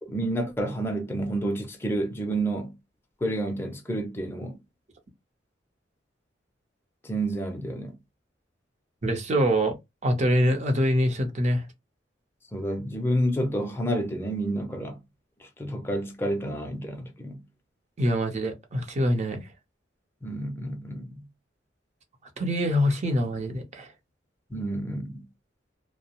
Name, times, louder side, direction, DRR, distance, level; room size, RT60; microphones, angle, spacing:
voice 1, 0.0-2.7 3.2-4.6 7.0-8.0 12.5-15.0 15.4-17.4 20.2-21.2 24.5-25.3, right 1 dB, 15° left, 0.5 m, -29 dB
voice 2, 9.0-9.8 10.0-11.6 18.0-19.5 22.4-23.9, equal, 40° right, 0.6 m, -24 dB
2.7 x 2.0 x 2.8 m
head